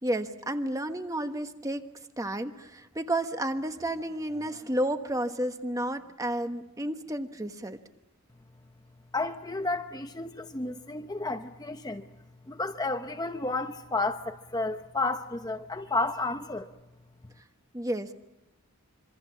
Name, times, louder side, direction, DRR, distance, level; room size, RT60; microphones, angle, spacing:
voice 1, 0.0-1.9 2.2-7.8 17.7-18.1, right 1 dB, 15° right, 8 dB, 1.2 m, -31 dB
voice 2, 9.1-12.1 12.5-16.7, left 2 dB, 15° left, 7 dB, 0.8 m, -31 dB
26.5 x 24.5 x 7.2 m, 0.98 s
head